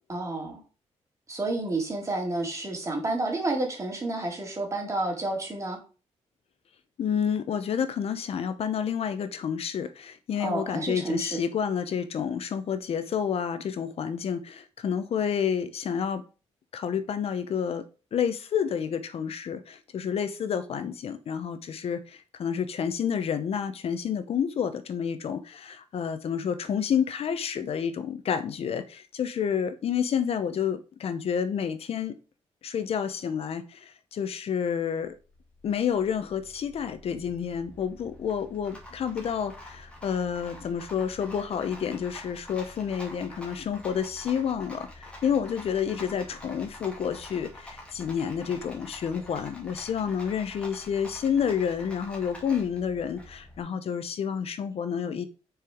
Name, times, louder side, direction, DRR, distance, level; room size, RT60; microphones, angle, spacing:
voice 1, 0.1-0.6 1.3-5.8 10.4-11.4, right 2 dB, 25° right, 2.4 m, -30 dB
voice 2, 7.0-16.2 16.7-17.8 18.1-32.1 32.6-35.1 35.6-55.3, left 7 dB, 60° left, 0.7 m, -29 dB
Rattle, 35.0-53.6, left 1 dB, 10° left, 2.4 m, -46 dB
6.5 x 4.8 x 4.9 m
wide cardioid pair, 140°, 12 cm